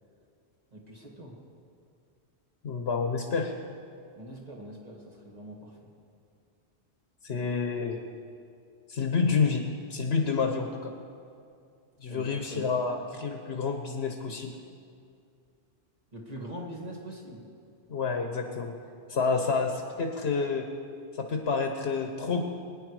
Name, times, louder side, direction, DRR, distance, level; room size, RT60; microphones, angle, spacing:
voice 1, 0.7-1.3 4.2-5.7 12.1-12.7 16.1-17.4, right 1 dB, 35° right, -2 dB, 2.2 m, -42 dB
voice 2, 2.6-3.5 7.2-8.0 8.9-9.6 9.9-10.9 12.0-14.5 17.9-18.7 19.1-20.7 21.2-22.4, left 5 dB, 70° left, 4 dB, 1.3 m, -29 dB
21.5 x 10.0 x 4.8 m, 2.4 s
omnidirectional pair, 1.1 m